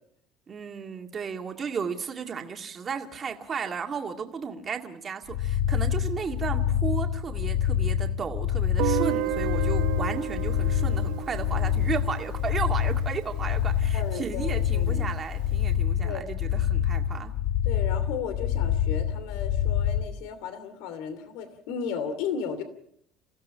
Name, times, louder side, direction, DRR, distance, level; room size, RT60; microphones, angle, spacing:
voice 1, 0.5-17.3, right 6 dB, 25° right, 4 dB, 1.9 m, -34 dB
sound 1, 5.3-20.0, left 9 dB, 65° left, 1.2 m, -26 dB
Guitar, 8.8-13.7, right 13 dB, 65° right, 0.9 m, -33 dB
voice 2, 13.9-15.1 16.0-16.2 17.6-22.6, left 7 dB, 80° left, 11 dB, 2.7 m, -34 dB
29.5 x 16.5 x 5.6 m, 0.68 s
cardioid pair, 170°, 0 cm